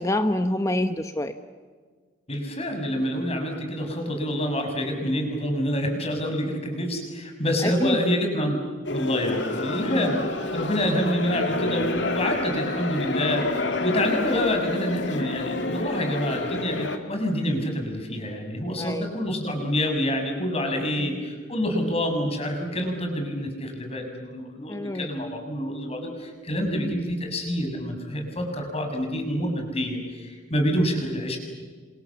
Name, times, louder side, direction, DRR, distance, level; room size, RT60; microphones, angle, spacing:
voice 1, 0.0-1.3 7.6-8.0 9.9-10.3 18.8-19.4 21.0-21.2 24.7-25.2, left 1 dB, 15° left, 8 dB, 1.0 m, -27 dB
voice 2, 2.3-8.6 8.9-31.4, equal, 35° left, 3 dB, 6.5 m, -27 dB
sound 1, 8.9-17.0, left 2 dB, 70° left, 2.4 m, -29 dB
28.5 x 26.5 x 7.3 m, 1.5 s
head